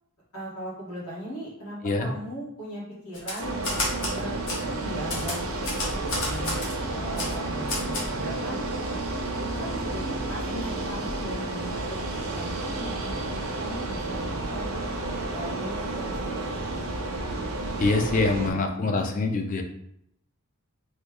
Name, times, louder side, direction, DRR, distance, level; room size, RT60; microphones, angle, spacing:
voice 1, 0.3-3.5 4.1-6.6 6.9-8.6 9.4-14.7 15.3-16.8 18.2-18.6, equal, 80° left, -7 dB, 1.4 m, -38 dB
Typewriter, 3.1-4.2 4.5-4.6 5.1-6.7 7.2-7.3 7.7-8.1, left 2 dB, 60° left, 0.9 m, -30 dB
sound 1, 3.4-18.5, right 2 dB, 65° right, 0.5 m, -31 dB
voice 2, 17.8-19.6, left 3 dB, 35° left, 5 dB, 0.4 m, -24 dB
3.1 x 2.3 x 3.5 m, 0.74 s
head